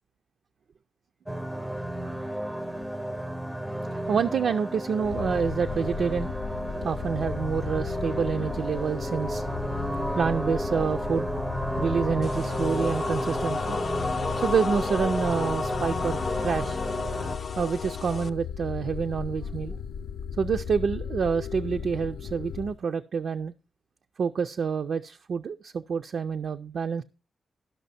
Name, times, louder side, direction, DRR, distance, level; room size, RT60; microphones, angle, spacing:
sound 1, 1.3-17.4, right 1 dB, 5° right, 0.5 m, -32 dB
voice 1, 4.1-6.3 6.8-9.6 10.1-11.3 11.8-13.8 14.4-16.8 17.6-19.8 20.4-23.5 24.2-27.0, right 6 dB, 65° right, 0.4 m, -28 dB
sound 2, 5.0-22.8, left 7 dB, 90° left, 0.6 m, -36 dB
sound 3, 12.2-18.3, left 4 dB, 45° left, 0.5 m, -33 dB
12.0 x 6.0 x 4.1 m
wide cardioid pair, 130°, 0 cm